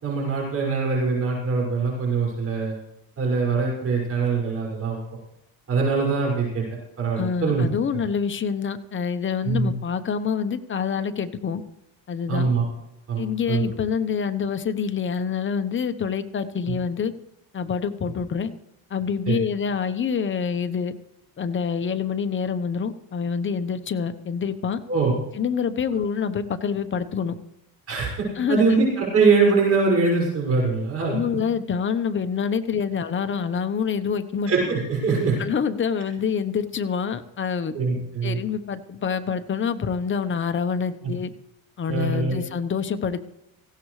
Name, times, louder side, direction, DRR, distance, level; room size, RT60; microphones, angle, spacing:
voice 1, 0.0-2.7 3.2-5.0 5.7-6.6 7.0-7.7 9.4-9.7 12.3-12.6 13.1-13.7 16.7-16.8 19.3-19.4 24.9-25.1 27.9-31.2 34.5-35.4 37.7-38.4 41.0-41.1 41.9-42.4, right 4 dB, 40° right, -3 dB, 6.0 m, -23 dB
voice 2, 7.2-11.6 12.1-12.5 13.2-17.1 17.5-18.5 18.9-20.9 21.4-24.8 25.3-27.3 28.4-28.6 31.0-34.5 35.4-37.7 38.2-41.3 41.8-43.2, left 6 dB, 30° left, 9 dB, 1.0 m, -26 dB
19.0 x 16.0 x 3.3 m, 0.88 s
cardioid pair, 125°, 38 cm